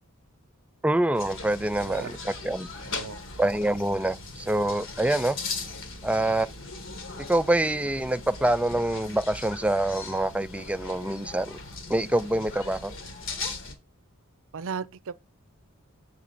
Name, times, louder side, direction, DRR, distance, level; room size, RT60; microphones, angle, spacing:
voice 1, 0.8-2.7 3.4-5.4 6.0-6.5 7.3-11.6 11.9-12.9, right 1 dB, 5° right, 0.4 m, -26 dB
sound 1, 1.1-13.8, left 3 dB, 60° left, 1.7 m, -39 dB
voice 2, 1.8-2.2 2.8-3.2 14.5-15.1, right 6 dB, 65° right, 0.6 m, -36 dB
sound 2, 3.6-6.9, right 1 dB, 85° left, 2.7 m, -53 dB
7.6 x 5.9 x 4.1 m
head